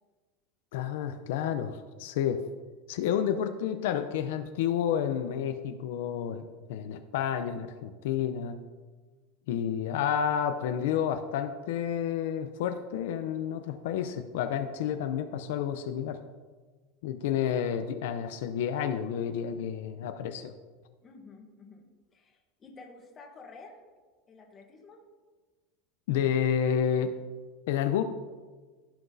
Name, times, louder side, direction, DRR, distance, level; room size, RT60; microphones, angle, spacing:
voice 1, 0.7-2.4 2.9-8.6 9.5-16.2 17.0-20.5 26.1-27.1 27.7-28.0, left 9 dB, 70° left, 8 dB, 0.5 m, -30 dB
voice 2, 21.0-23.8 24.3-25.0, left 3 dB, 20° left, 3 dB, 1.1 m, -51 dB
16.0 x 5.9 x 2.7 m, 1.4 s
supercardioid pair, 170°, 0 cm